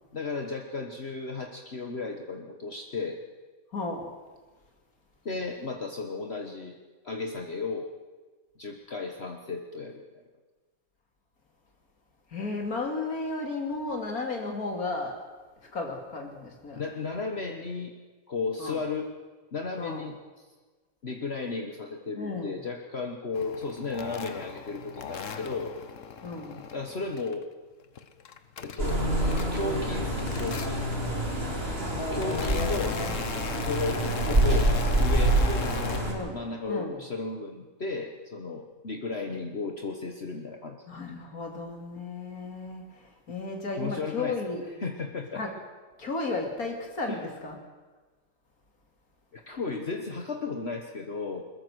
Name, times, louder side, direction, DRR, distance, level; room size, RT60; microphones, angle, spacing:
voice 1, 0.1-3.2 5.2-6.7 7.0-7.9 8.6-10.0 16.7-17.9 18.3-19.1 19.5-20.5 21.0-25.7 26.7-27.4 28.6-29.0 29.5-30.8 32.1-33.0 33.6-34.7 35.0-40.8 43.7-44.4 44.8-45.4 47.1-47.2 49.3-51.4, left 3 dB, 45° left, 3 dB, 1.6 m, -34 dB
voice 2, 3.7-4.1 12.3-15.2 15.7-16.8 18.6-18.8 19.8-20.1 22.2-22.6 26.2-26.7 31.9-33.2 36.1-36.4 36.7-36.9 40.9-42.8 43.3-44.6 45.3-45.5 46.0-47.6, left 3 dB, 90° left, 2 dB, 3.2 m, -34 dB
sound 1, 23.3-27.4 27.8-29.9 30.2-31.0 31.7-36.0, left 6 dB, 60° left, 1.4 m, -39 dB
sound 2, 28.8-36.1, right 1 dB, 40° right, 4.7 m, -26 dB
21.5 x 21.0 x 6.3 m, 1.3 s
omnidirectional pair, 1.5 m